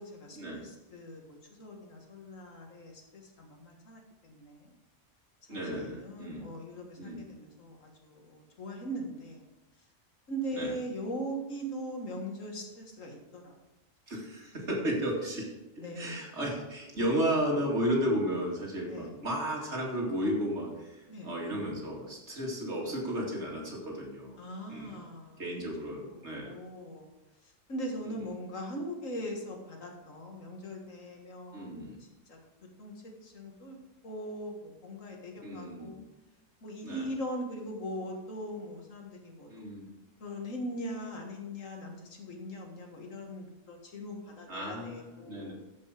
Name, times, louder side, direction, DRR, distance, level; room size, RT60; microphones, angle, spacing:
voice 1, 0.0-4.7 5.5-9.4 10.3-13.5 15.8-16.3 18.8-19.1 21.1-21.3 24.4-25.4 25.8-27.1 27.4-31.9 32.3-32.4 32.8-33.8 34.0-36.0 36.6-39.5 40.2-45.5, equal, 80° left, 1 dB, 2.1 m, -40 dB
voice 2, 5.5-6.5 7.0-7.2 10.5-10.7 14.1-15.5 15.8-24.4 24.7-25.0 25.4-26.6 31.5-32.0 35.4-36.0 36.8-37.1 39.5-39.9 44.5-45.5, equal, 60° right, -2 dB, 2.7 m, -33 dB
13.5 x 5.4 x 5.1 m, 1.0 s
omnidirectional pair, 1.3 m